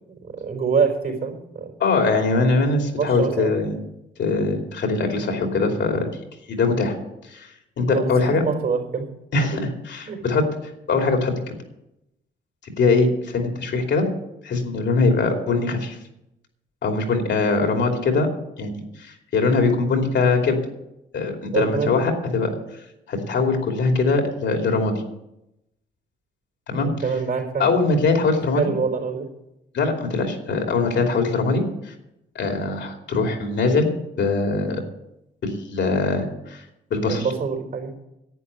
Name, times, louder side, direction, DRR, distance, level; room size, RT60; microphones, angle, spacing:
voice 1, 0.2-1.7 3.0-3.7 7.8-9.1 10.0-10.2 21.5-21.9 26.8-27.7 28.5-29.3 37.1-37.9, right 5 dB, 50° right, 2 dB, 4.2 m, -25 dB
voice 2, 1.8-3.7 4.2-6.1 6.5-6.9 7.3-7.5 7.8-8.4 9.3-10.4 10.9-11.5 12.6-14.1 14.4-16.0 16.8-18.3 18.6-18.7 19.0-20.6 21.1-22.5 23.1-24.9 26.7-26.9 27.6-28.7 29.7-31.9 32.3-33.9 34.2-34.8 35.4-36.6 36.9-37.3, left 3 dB, 65° left, 3 dB, 2.9 m, -22 dB
11.0 x 8.7 x 8.3 m, 0.87 s
cardioid pair, 90°, 20 cm